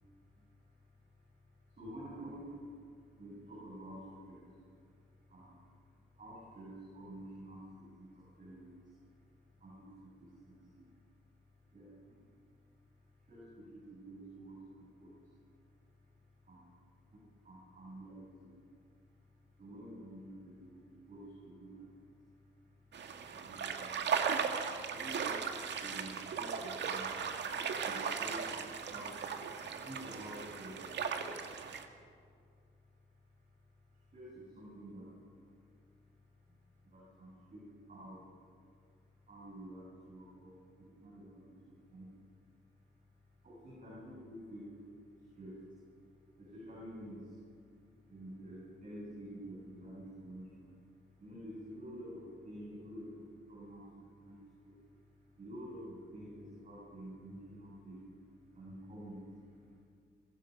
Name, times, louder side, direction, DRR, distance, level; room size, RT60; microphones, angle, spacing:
voice 1, 0.3-0.9 1.7-4.8 5.2-5.7 6.1-9.0 9.6-10.9 11.7-12.3 13.2-15.2 16.4-16.7 17.1-18.5 19.6-22.7 23.2-29.3 29.8-31.8 33.9-35.2 36.5-36.6 36.8-38.3 39.3-42.1 43.4-45.8 46.4-47.4 48.1-50.7 51.2-54.8 55.4-58.1 58.5-59.8, right 1 dB, 40° right, -5 dB, 7.7 m, -50 dB
sound 1, 22.9-31.8, right 6 dB, 60° right, 1.9 m, -37 dB
26.0 x 22.0 x 5.4 m, 2.2 s
cardioid pair, 90°, 20 cm